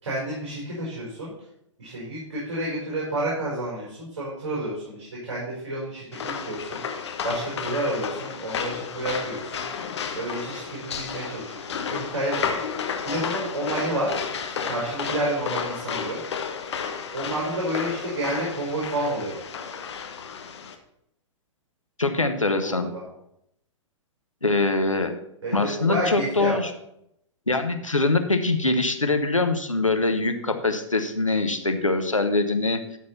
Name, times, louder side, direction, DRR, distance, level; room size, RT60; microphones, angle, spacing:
voice 1, 0.0-1.3 1.8-9.7 10.1-12.6 13.0-14.1 14.4-16.2 17.1-19.4 22.6-23.0 25.4-26.6, right 1 dB, 60° right, -6 dB, 4.5 m, -30 dB
sound 1, 6.1-20.7, left 6 dB, 60° left, 1.3 m, -32 dB
voice 2, 22.0-22.9 24.4-25.1 25.5-26.7 27.5-32.8, left 3 dB, 90° left, 6 dB, 1.1 m, -23 dB
12.5 x 4.3 x 5.9 m, 0.78 s
figure-of-eight pair, 110°, 16 cm